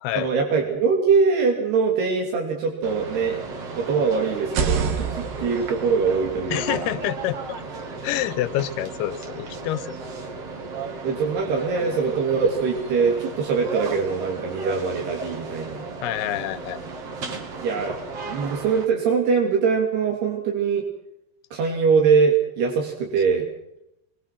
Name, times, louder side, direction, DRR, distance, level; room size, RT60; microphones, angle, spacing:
voice 1, 0.2-3.4 3.7-7.0 11.0-15.8 17.6-18.0 18.3-20.8 21.5-23.5, right 5 dB, 90° right, 0 dB, 4.9 m, -22 dB
sound 1, 2.8-18.8, right 3 dB, 45° right, 3.1 m, -35 dB
sound 2, 4.4-8.2, right 6 dB, 65° right, 3.3 m, -30 dB
voice 2, 6.5-7.6 8.0-9.9 16.0-16.8, left 13 dB, 80° left, 15 dB, 2.9 m, -27 dB
23.0 x 23.0 x 6.1 m, 0.80 s
omnidirectional pair, 4.5 m